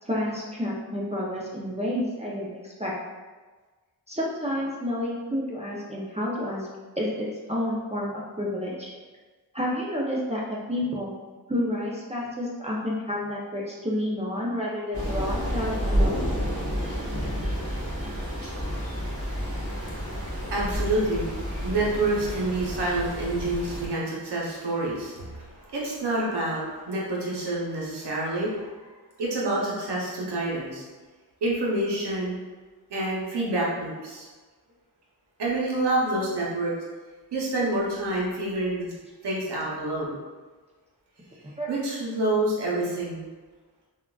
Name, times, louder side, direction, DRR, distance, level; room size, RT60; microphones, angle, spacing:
voice 1, 0.0-2.9 4.1-6.7 7.0-8.9 9.5-11.1 11.5-16.2 17.2-17.3 41.6-41.7, left 1 dB, 15° right, -5 dB, 0.6 m, -30 dB
Thunder / Rain, 14.9-23.9, equal, 35° right, 1.3 m, -30 dB
voice 2, 19.2-28.9 29.2-30.8 31.4-32.4 32.9-34.3 35.4-36.7 37.3-38.9 39.2-40.2 41.7-43.3, right 2 dB, 85° right, -4 dB, 0.8 m, -28 dB
3.6 x 2.5 x 2.3 m, 1.3 s
cardioid pair, 45°, 40 cm